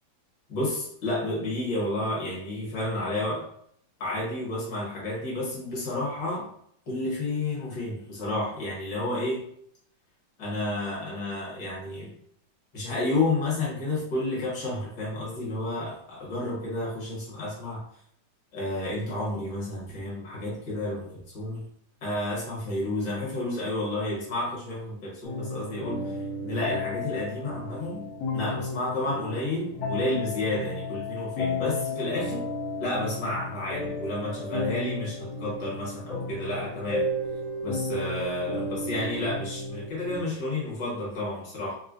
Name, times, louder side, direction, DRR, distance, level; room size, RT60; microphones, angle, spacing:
voice 1, 0.5-3.4 4.0-6.4 6.9-9.4 10.4-12.1 12.7-17.8 18.5-21.6 22.0-28.1 28.3-32.4 32.8-37.1 37.6-41.7, left 2 dB, 65° left, -5 dB, 1.9 m, -31 dB
sound 1, 25.2-40.2, left 2 dB, 85° left, 1.7 m, -33 dB
4.2 x 2.1 x 2.5 m, 0.68 s
omnidirectional pair, 2.1 m